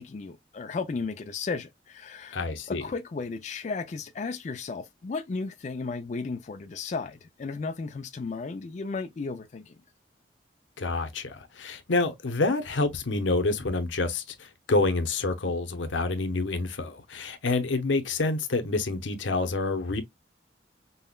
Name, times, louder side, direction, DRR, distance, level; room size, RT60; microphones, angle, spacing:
voice 1, 0.0-9.8, left 4 dB, 40° left, 0.4 m, -34 dB
voice 2, 2.3-2.8 10.8-20.0, left 3 dB, 90° left, 0.8 m, -28 dB
5.4 x 2.1 x 2.2 m
head